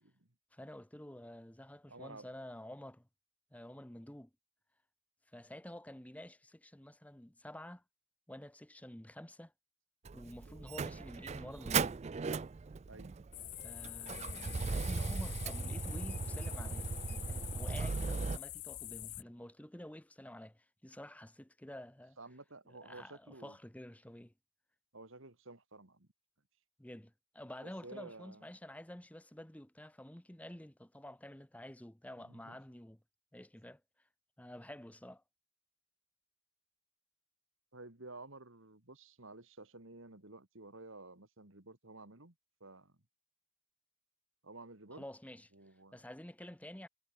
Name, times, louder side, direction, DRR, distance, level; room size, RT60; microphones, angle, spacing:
voice 1, 0.5-3.1 3.5-4.3 5.3-7.8 8.3-9.5 10.1-12.0 13.6-22.2 22.8-24.3 26.8-33.0 33.3-33.8 34.4-35.2 44.9-45.5 45.9-46.9, left 1 dB, 5° left, 0.8 m, -50 dB
voice 2, 1.9-2.3 12.9-13.1 22.2-23.6 24.9-26.1 27.6-28.5 32.2-32.6 37.7-42.3 42.6-43.0 44.4-45.0 45.5-45.9, right 2 dB, 60° right, 2.4 m, -52 dB
Motor vehicle (road), 10.0-18.4, right 4 dB, 30° right, 0.3 m, -38 dB
sound 1, 13.3-19.2, left 16 dB, 80° left, 0.9 m, -46 dB
head